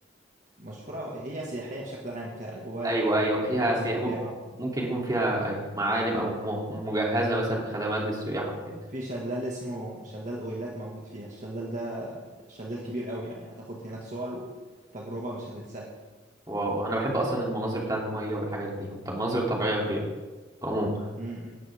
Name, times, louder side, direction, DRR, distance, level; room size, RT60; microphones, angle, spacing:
voice 1, 0.6-4.4 8.9-14.5 14.9-15.9 21.1-21.6, right 1 dB, 40° right, -3 dB, 1.9 m, -36 dB
voice 2, 2.8-4.1 4.6-8.5 16.5-20.0 20.6-21.1, right 1 dB, 20° right, -3 dB, 3.1 m, -28 dB
18.0 x 13.0 x 3.7 m, 1.3 s
head